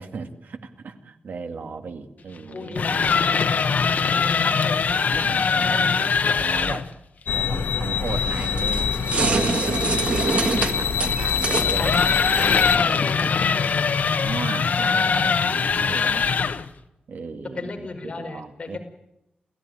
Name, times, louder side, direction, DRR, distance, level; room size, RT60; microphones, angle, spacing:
voice 1, 0.0-3.1 5.1-6.1 6.4-6.9 7.3-9.9 10.5-12.0 14.2-16.3 17.1-18.8, right 5 dB, 65° right, 6 dB, 2.2 m, -35 dB
voice 2, 2.5-5.3 11.5-11.9 12.6-13.9 17.5-18.8, left 3 dB, 35° left, 2 dB, 5.1 m, -35 dB
sound 1, 2.6-6.9 9.5-16.7, left 5 dB, 55° left, 1.2 m, -22 dB
sound 2, 7.3-12.8, left 6 dB, 85° left, 1.3 m, -25 dB
sound 3, 8.1-13.3, right 3 dB, 40° right, 1.6 m, -27 dB
28.5 x 15.5 x 9.8 m, 0.90 s
wide cardioid pair, 170°, 3 cm